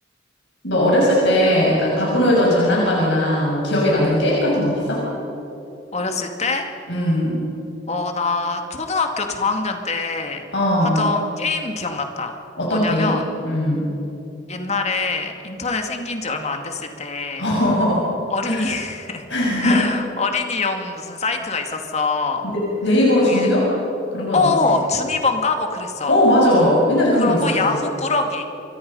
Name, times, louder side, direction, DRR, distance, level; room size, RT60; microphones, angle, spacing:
voice 1, 0.6-5.0 6.9-7.4 10.5-11.0 12.6-13.1 13.4-13.8 17.4-18.0 18.5-18.6 19.3-19.8 22.4-23.7 24.1-24.7 26.1-27.4 27.6-27.8, left 1 dB, 70° left, -5 dB, 6.5 m, -18 dB
voice 2, 5.9-6.7 7.9-10.5 10.8-12.4 12.7-13.2 14.5-17.4 18.3-19.2 19.6-22.4 23.2-23.5 24.3-26.2 27.2-28.4, left 3 dB, 35° left, 4 dB, 2.3 m, -24 dB
28.5 x 24.0 x 5.6 m, 3.0 s
head